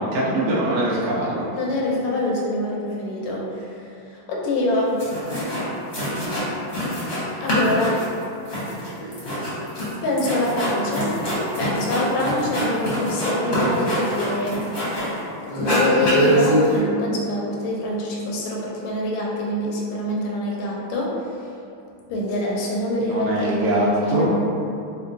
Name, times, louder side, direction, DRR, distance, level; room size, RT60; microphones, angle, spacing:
voice 1, 0.0-1.5 23.0-24.3, right 1 dB, 80° right, -7 dB, 0.8 m, -22 dB
voice 2, 1.5-3.7 4.1-5.0 7.4-8.0 10.0-11.2 11.5-14.6 15.5-21.1 22.1-24.3, left 1 dB, 80° left, -3 dB, 1.5 m, -25 dB
sound 1, 4.7-4.8 5.0-5.6 5.9-7.2 7.5-15.2 15.5-16.8, equal, 45° left, 0.8 m, -24 dB
3.6 x 2.3 x 2.5 m, 2.6 s
omnidirectional pair, 2.3 m